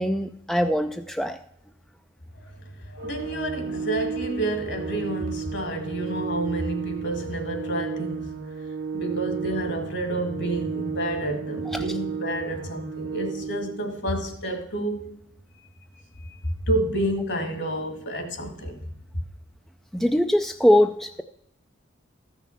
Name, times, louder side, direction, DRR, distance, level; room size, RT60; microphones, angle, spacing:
voice 1, 0.0-1.4 11.7-11.8 19.9-21.2, left 1 dB, ahead, 0.4 m, -22 dB
voice 2, 2.9-8.5 8.9-15.2 16.7-18.8, right 1 dB, 60° left, 2.0 m, -29 dB
Organ, 3.0-13.9, right 6 dB, 90° right, 1.8 m, -33 dB
13.5 x 6.0 x 5.8 m
head